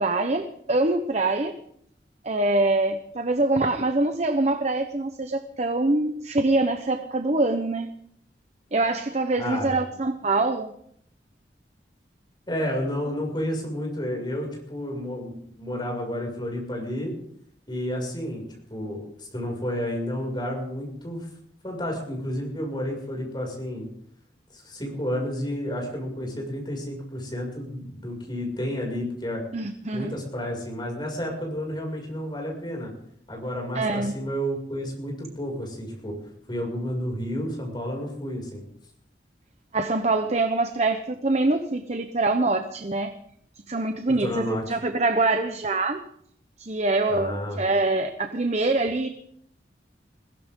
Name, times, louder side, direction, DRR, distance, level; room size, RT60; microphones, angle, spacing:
voice 1, 0.0-1.6 2.2-7.9 8.7-10.7 29.5-30.1 33.7-34.1 39.7-43.1 43.7-46.0 46.6-49.1, right 2 dB, 40° right, 7 dB, 1.0 m, -24 dB
voice 2, 9.4-9.8 12.5-17.2 17.7-18.4 18.7-21.3 21.6-23.9 24.5-29.4 29.9-32.9 33.3-36.2 36.5-38.6 44.1-44.6 47.1-47.6, equal, 25° left, 1 dB, 6.4 m, -31 dB
22.0 x 16.0 x 3.8 m, 0.67 s
head